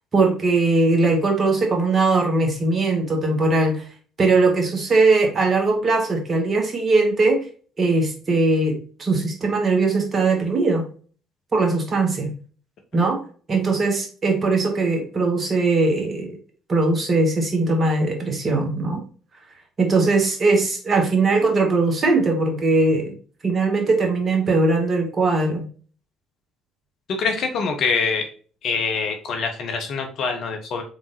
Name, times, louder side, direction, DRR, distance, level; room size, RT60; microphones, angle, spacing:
voice 1, 0.1-3.9 4.2-7.4 7.8-10.8 11.5-12.3 12.9-13.2 13.5-16.4 16.7-19.0 19.8-23.1 23.4-25.7, right 3 dB, 40° right, 2 dB, 1.7 m, -20 dB
voice 2, 27.1-28.3 28.6-30.8, left 5 dB, 60° left, 4 dB, 1.0 m, -24 dB
4.7 x 3.6 x 2.7 m, 0.41 s
hypercardioid pair, 55°, 0 cm